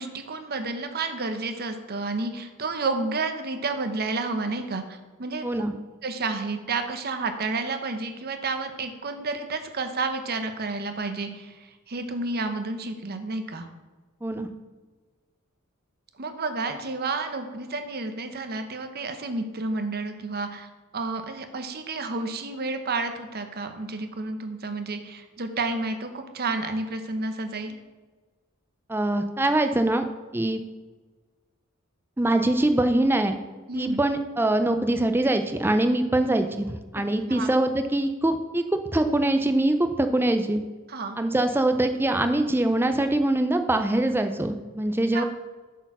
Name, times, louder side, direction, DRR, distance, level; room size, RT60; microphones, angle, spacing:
voice 1, 0.0-5.6 6.0-11.6 11.9-13.7 16.2-20.7 20.9-27.8 33.7-34.0 37.3-37.5 40.9-41.2 45.1-45.2, right 3 dB, 45° right, 7 dB, 0.8 m, -30 dB
voice 2, 5.4-5.7 14.2-14.5 28.9-30.0 30.3-30.6 32.2-33.4 33.7-40.6 41.2-45.2, right 1 dB, 10° right, 7 dB, 0.5 m, -23 dB
7.8 x 4.6 x 6.0 m, 1.3 s
head